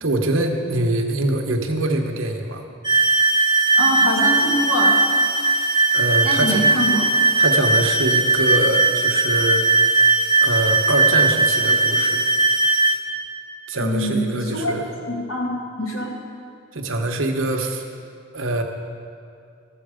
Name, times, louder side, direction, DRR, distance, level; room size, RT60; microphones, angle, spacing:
voice 1, 0.0-2.7 5.9-6.6 7.4-9.6 10.4-12.2 13.7-14.9 16.7-17.8 18.3-18.6, right 2 dB, 75° right, 4 dB, 1.0 m, -24 dB
sound 1, 2.8-13.0, right 3 dB, 20° right, 0.7 m, -18 dB
voice 2, 3.8-4.9 6.2-7.0 13.8-14.7 15.1-16.1, equal, 80° left, -2 dB, 2.0 m, -24 dB
13.0 x 7.8 x 5.0 m, 2.3 s
head